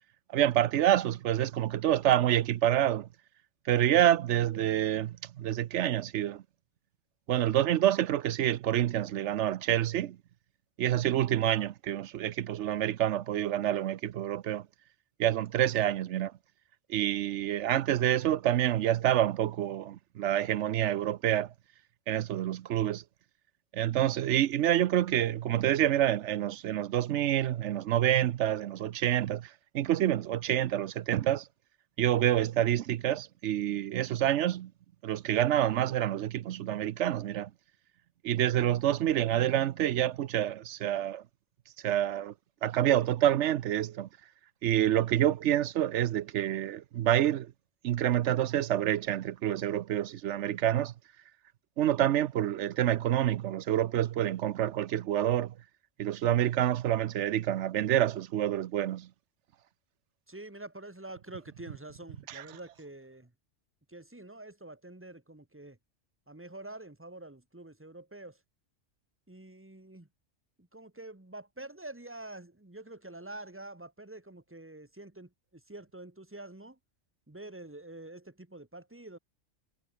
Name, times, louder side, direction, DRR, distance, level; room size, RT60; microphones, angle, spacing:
voice 1, 0.3-3.1 3.7-6.4 7.3-10.2 10.8-14.6 15.2-16.3 16.9-21.5 22.1-23.0 23.7-29.4 29.7-31.4 32.0-34.7 35.0-37.5 38.2-41.2 41.8-42.3 42.6-44.1 44.6-47.5 47.8-50.9 51.8-55.5 56.0-59.1 62.3-62.4, right 12 dB, 70° right, 0.9 m, -27 dB
voice 2, 60.3-63.3 63.9-65.8 66.3-68.4 69.3-70.1 70.6-76.8 77.3-79.2, right 2 dB, 10° right, 1.7 m, -46 dB
omnidirectional pair, 1.3 m